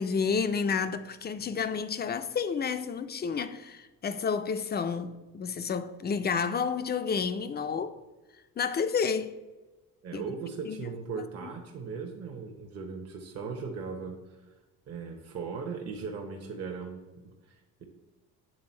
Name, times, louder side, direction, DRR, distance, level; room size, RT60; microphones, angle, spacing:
voice 1, 0.0-7.9 8.6-9.3 10.1-10.3 10.7-10.9 11.2-11.3, left 6 dB, 25° left, 0.5 m, -30 dB
voice 2, 10.0-14.4 14.9-17.8, right 5 dB, 40° right, 1.0 m, -38 dB
7.7 x 3.5 x 4.4 m
supercardioid pair, 90°, 38 cm